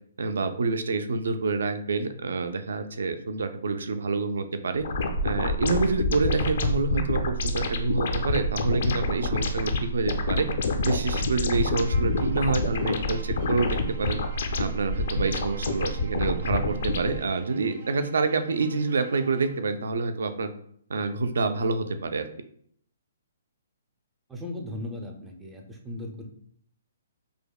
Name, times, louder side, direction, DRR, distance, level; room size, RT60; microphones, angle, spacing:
voice 1, 0.2-4.8 5.2-10.5 10.8-14.2 14.6-20.5 20.9-22.2, right 4 dB, 80° right, 9 dB, 0.4 m, -27 dB
sound 1, 4.8-17.2, left 2 dB, 60° left, 0.4 m, -27 dB
Bowed string instrument, 11.8-19.7, right 3 dB, 60° right, 0.9 m, -48 dB
voice 2, 24.3-26.3, left 1 dB, 5° right, 1 dB, 0.4 m, -37 dB
4.9 x 2.1 x 2.3 m, 0.64 s
hypercardioid pair, 165°, 0 cm